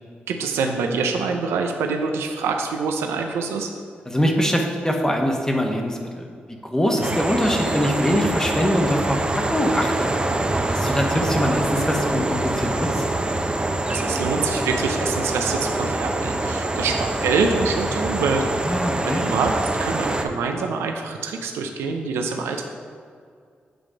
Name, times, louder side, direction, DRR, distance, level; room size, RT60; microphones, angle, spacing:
voice 1, 0.3-3.7 13.9-18.5 19.0-19.5 19.8-22.6, right 4 dB, 85° right, 4 dB, 0.5 m, -25 dB
voice 2, 4.1-10.1 10.7-13.0 18.6-19.2, equal, 15° left, 2 dB, 1.1 m, -23 dB
sound 1, 7.0-20.2, right 2 dB, 25° right, 0.6 m, -25 dB
7.7 x 3.2 x 5.0 m, 2.1 s
supercardioid pair, 45°, 4 cm